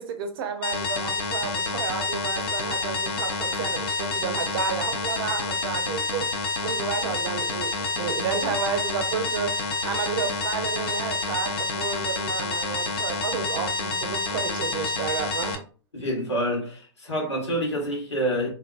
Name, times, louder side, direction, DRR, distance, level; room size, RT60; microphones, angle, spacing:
voice 1, 0.0-15.6, right 6 dB, 55° right, 0.6 m, -31 dB
sound 1, 0.6-15.6, left 3 dB, 55° left, 0.6 m, -28 dB
voice 2, 15.9-18.5, equal, 85° left, 1.3 m, -27 dB
2.7 x 2.1 x 2.4 m
figure-of-eight pair, 100°, 14 cm